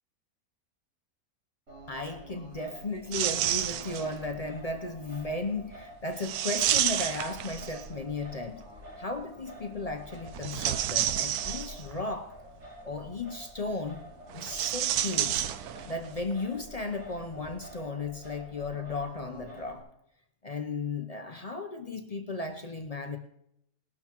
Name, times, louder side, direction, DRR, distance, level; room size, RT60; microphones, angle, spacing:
Singing, 1.7-19.8, equal, 55° right, 4.8 m, -48 dB
voice 1, 1.9-8.6 9.0-12.3 12.8-14.0 14.3-15.5 15.8-19.8 20.4-23.2, left 3 dB, 40° left, 5 dB, 0.5 m, -35 dB
sound 1, 3.1-4.2 6.2-8.0 10.3-12.0 14.3-16.1 16.3-16.4 17.4-17.5, right 11 dB, 85° right, 1.1 m, -30 dB
19.5 x 12.0 x 3.0 m, 0.79 s
omnidirectional pair, 1.6 m